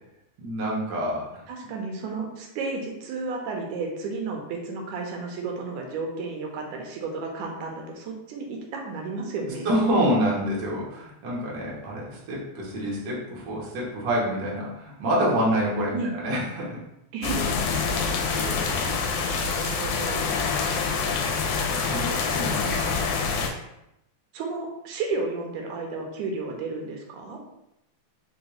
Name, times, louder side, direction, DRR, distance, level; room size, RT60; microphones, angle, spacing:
voice 1, 0.4-1.3 9.6-16.8 18.3-18.7 21.7-23.0, equal, 70° right, -5 dB, 1.0 m, -27 dB
voice 2, 1.5-9.7 15.9-16.1 17.1-17.5 18.6-18.9 19.2-20.4 22.0-22.2 24.3-27.4, right 3 dB, 85° right, 1 dB, 2.1 m, -33 dB
sound 1, 17.2-23.5, left 5 dB, 85° left, 2.0 m, -26 dB
5.1 x 2.3 x 3.0 m, 0.86 s
omnidirectional pair, 3.4 m